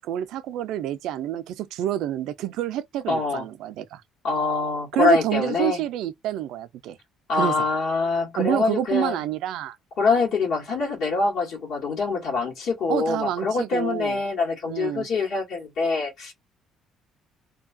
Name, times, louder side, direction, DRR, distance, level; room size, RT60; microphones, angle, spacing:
voice 1, 0.0-4.0 4.9-7.0 7.3-7.7 8.4-9.8 12.9-14.2 14.7-15.1, right 12 dB, 80° right, 0.4 m, -28 dB
voice 2, 3.1-3.4 4.2-5.8 7.3-9.2 10.0-16.3, left 4 dB, 70° left, 1.5 m, -24 dB
2.7 x 2.3 x 2.5 m
cardioid pair, 140°, 0 cm